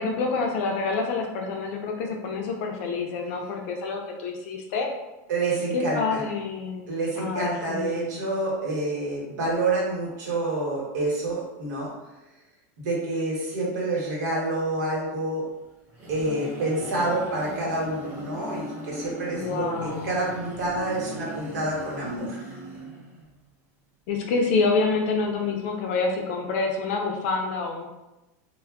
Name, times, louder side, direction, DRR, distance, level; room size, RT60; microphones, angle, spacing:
voice 1, 0.0-4.9 5.7-6.9 7.2-8.2 19.3-20.2 24.1-27.9, left 4 dB, 50° left, 2 dB, 0.5 m, -27 dB
voice 2, 5.3-6.2 6.9-11.9 12.8-15.4 16.1-22.6, right 2 dB, 80° right, -3 dB, 1.1 m, -28 dB
sound 1, 15.6-23.4, right 1 dB, 20° right, 0.4 m, -38 dB
2.2 x 2.1 x 3.4 m, 1.0 s
supercardioid pair, 175°, 9 cm